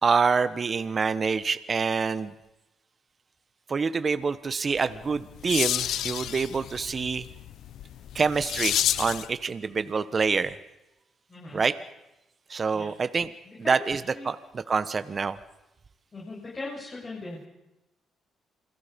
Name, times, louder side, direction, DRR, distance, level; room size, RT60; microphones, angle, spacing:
voice 1, 0.0-2.3 3.7-7.2 8.1-10.5 11.5-11.8 12.5-13.3 13.6-15.4, right 5 dB, 40° right, 13 dB, 1.2 m, -26 dB
sound 1, 4.9-9.3, left 11 dB, 75° left, 0.7 m, -30 dB
voice 2, 11.3-11.6 12.7-12.9 13.5-14.3 16.1-17.5, left 2 dB, 30° left, -4 dB, 7.4 m, -39 dB
28.0 x 22.0 x 5.3 m, 0.95 s
cardioid pair, 90°, 0 cm